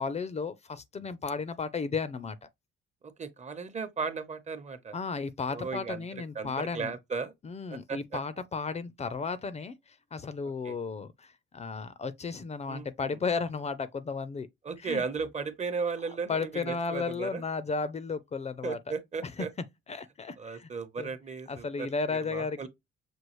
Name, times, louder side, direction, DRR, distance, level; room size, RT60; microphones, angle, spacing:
voice 1, 0.0-2.5 4.9-6.9 7.4-14.5 14.8-15.0 16.3-18.8 19.9-20.7 21.0-21.1 21.5-22.7, left 4 dB, 35° left, 0.5 m, -34 dB
voice 2, 3.0-5.0 5.5-7.3 7.7-8.2 10.6-10.8 12.7-13.2 14.6-17.4 18.6-19.5 20.4-22.7, right 5 dB, 35° right, 0.9 m, -36 dB
6.2 x 2.4 x 3.1 m
cardioid pair, 90°, 20 cm